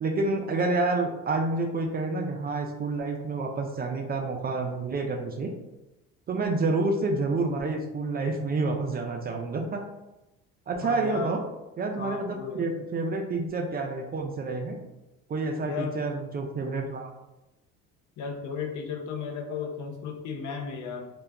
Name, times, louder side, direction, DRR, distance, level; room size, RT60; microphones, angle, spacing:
voice 1, 0.0-5.5 6.3-9.8 10.7-11.4 11.8-14.8 15.3-17.1, right 3 dB, 30° right, 3 dB, 0.3 m, -28 dB
voice 2, 10.8-11.3 12.0-12.7 15.6-15.9 18.2-21.1, left 6 dB, 60° left, 3 dB, 0.6 m, -34 dB
2.2 x 2.0 x 3.4 m, 0.98 s
supercardioid pair, 80°, 33 cm